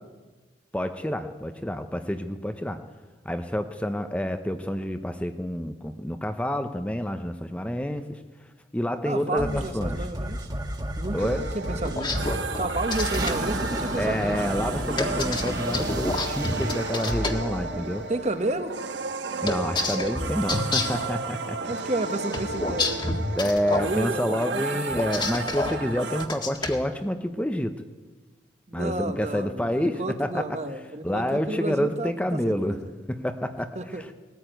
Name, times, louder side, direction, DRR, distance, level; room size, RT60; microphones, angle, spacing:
voice 1, 0.7-2.8 3.2-8.2 8.7-10.1 11.1-11.4 14.0-18.0 19.4-21.7 23.3-27.8 28.7-30.4 31.0-32.8 33.1-34.1, equal, 5° left, 7 dB, 0.8 m, -28 dB
voice 2, 9.0-10.5 11.0-12.2 12.6-14.4 18.1-18.8 21.7-23.4 23.6-24.8 25.4-25.7 28.7-32.1 32.4-32.8 33.7-34.0, right 2 dB, 35° right, 8 dB, 1.3 m, -31 dB
sound 1, 9.4-18.7, right 1 dB, 20° right, 1.7 m, -32 dB
sound 2, 11.2-26.3, right 3 dB, 80° right, 1.4 m, -33 dB
sound 3, 11.8-13.3 15.0-17.3 19.5-21.0 22.3-23.9 24.9-25.7 26.2-26.8, left 2 dB, 25° left, 1.7 m, -28 dB
20.0 x 14.5 x 9.1 m, 1.3 s
head